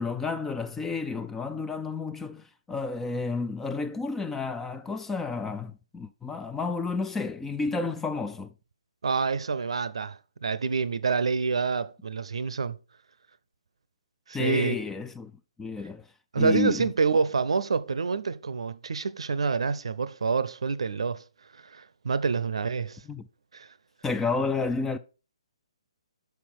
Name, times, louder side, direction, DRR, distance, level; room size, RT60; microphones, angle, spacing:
voice 1, 0.0-8.5 14.3-15.3 15.6-16.1 16.4-16.9 23.1-23.3 24.0-25.0, left 4 dB, 5° left, 0.3 m, -31 dB
voice 2, 9.0-12.8 14.3-14.8 16.3-21.2 21.7-23.0 23.5-23.7, right 5 dB, 65° right, 0.6 m, -27 dB
5.9 x 5.8 x 4.3 m
figure-of-eight pair, 135°, 3 cm